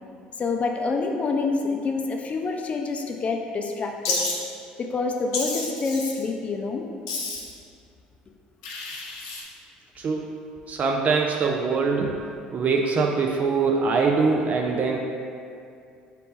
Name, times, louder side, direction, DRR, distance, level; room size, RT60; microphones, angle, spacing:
voice 1, 0.4-4.2 4.8-6.8, left 4 dB, 40° left, 3 dB, 0.4 m, -27 dB
Wild animals, 4.0-4.4 5.3-6.2 7.1-7.6 8.6-9.4, left 3 dB, 85° left, 0.6 m, -30 dB
voice 2, 10.0-10.4 10.7-15.0, right 4 dB, 45° right, 1 dB, 0.3 m, -23 dB
4.0 x 2.8 x 3.6 m, 2.4 s
hypercardioid pair, 70°, 4 cm